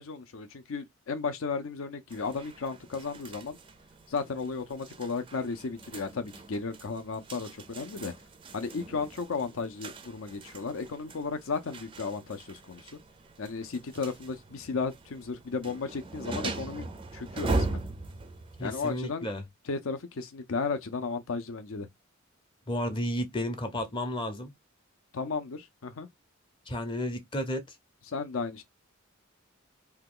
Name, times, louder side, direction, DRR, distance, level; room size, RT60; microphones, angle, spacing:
voice 1, 0.0-3.6 4.1-8.1 8.5-13.0 13.4-17.8 18.6-19.3 19.7-21.9 25.1-26.1 28.1-28.6, left 4 dB, 70° left, 0.6 m, -34 dB
sound 1, 2.1-19.0, right 2 dB, 25° right, 0.4 m, -40 dB
voice 2, 18.6-19.4 22.7-24.5 26.7-27.6, left 1 dB, 25° left, 0.6 m, -32 dB
2.8 x 2.3 x 3.7 m
head